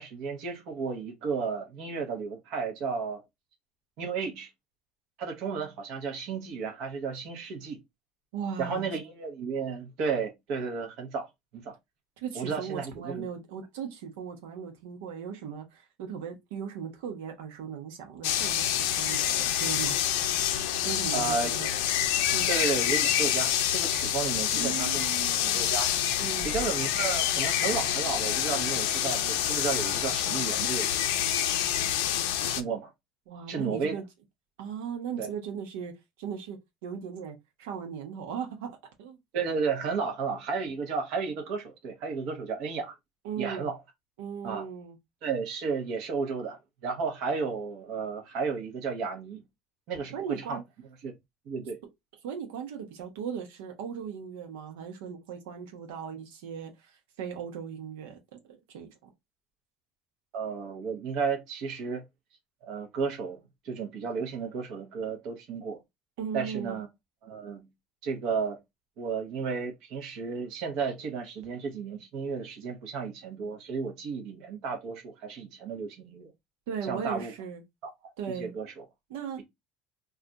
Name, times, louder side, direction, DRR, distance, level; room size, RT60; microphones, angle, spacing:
voice 1, 0.0-3.2 4.0-4.5 5.2-7.8 8.6-11.3 11.5-11.7 12.3-13.3 21.1-21.8 22.5-25.1 25.4-25.9 26.4-31.0 32.4-32.9 33.5-33.9 35.2-35.3 39.3-42.9 43.4-43.8 44.4-44.6 45.2-49.4 49.9-50.6 51.0-51.1 51.5-51.8 60.3-62.0 62.6-65.8 66.3-66.9 67.2-67.7 68.0-68.6 69.0-76.3 76.8-77.3 77.8-78.8, right 5 dB, 60° right, 0.9 m, -33 dB
voice 2, 8.3-8.9 12.2-20.0 20.8-21.7 22.3-22.5 24.5-25.6 26.2-26.6 33.3-34.0 34.6-35.9 36.2-39.2 43.2-43.7 44.2-45.0 50.1-50.6 52.2-59.1 66.2-66.8 76.7-77.6 78.2-78.5 79.1-79.4, right 7 dB, 90° right, 0.9 m, -38 dB
sound 1, 18.2-32.6, left 11 dB, 80° left, 0.5 m, -27 dB
2.4 x 2.3 x 3.9 m
cardioid pair, 145°, 0 cm